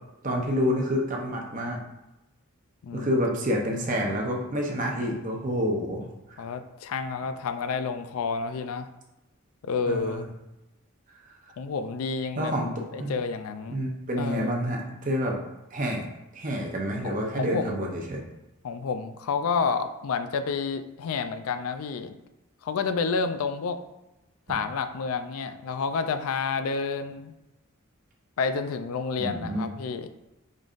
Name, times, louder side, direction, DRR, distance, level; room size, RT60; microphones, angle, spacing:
voice 1, 0.2-1.8 2.9-6.1 9.9-10.2 12.3-12.7 13.0-13.1 13.7-15.4 15.7-16.1 16.3-18.2 29.2-29.7, equal, 35° right, 0 dB, 0.7 m, -28 dB
voice 2, 2.8-3.2 6.4-8.9 9.6-10.3 11.6-12.5 12.9-13.8 14.2-14.5 17.0-17.8 18.6-22.2 22.6-23.8 24.5-27.3 28.4-30.1, left 5 dB, 80° left, 9 dB, 0.4 m, -29 dB
5.2 x 3.8 x 2.5 m, 0.97 s
head